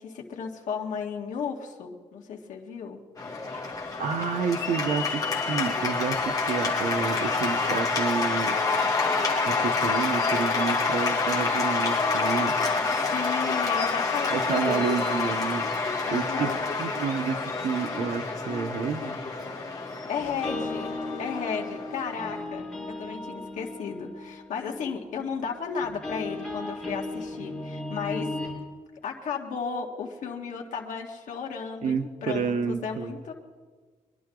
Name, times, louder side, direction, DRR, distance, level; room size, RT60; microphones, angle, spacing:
voice 1, 0.0-3.0 13.0-15.1 16.0-16.7 20.1-20.9 21.2-28.4 29.0-33.3, left 6 dB, 75° left, 0 dB, 1.8 m, -34 dB
Cheering / Applause, 3.2-22.4, left 4 dB, 25° left, 2.1 m, -27 dB
voice 2, 3.5-8.7 9.4-12.5 14.3-15.7 16.1-16.5 16.8-19.2 31.8-33.2, right 6 dB, 70° right, 8 dB, 1.0 m, -30 dB
sound 1, 20.2-28.5, left 2 dB, 5° left, 4.6 m, -36 dB
23.0 x 11.5 x 3.9 m, 1.5 s
wide cardioid pair, 155°, 13 cm